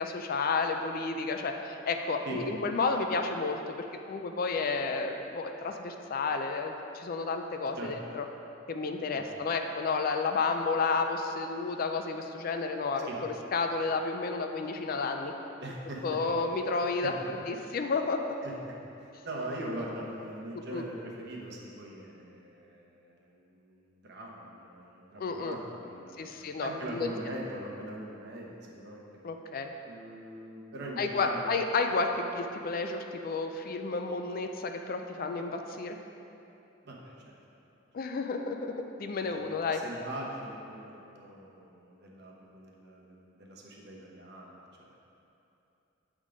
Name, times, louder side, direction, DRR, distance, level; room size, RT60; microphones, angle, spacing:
voice 1, 0.0-3.6 4.1-8.2 8.7-15.3 16.0-17.1 17.5-18.4 20.5-20.8 25.2-25.6 26.2-27.1 29.2-29.7 31.0-36.0 37.9-38.7 39.0-39.8, left 4 dB, 45° left, 5 dB, 0.4 m, -31 dB
voice 2, 15.6-16.2 17.0-17.3 18.4-26.3 26.6-29.0 29.9-31.5 36.8-37.4 39.2-45.0, right 1 dB, 55° right, -2 dB, 1.0 m, -42 dB
8.1 x 3.7 x 4.9 m, 2.8 s
head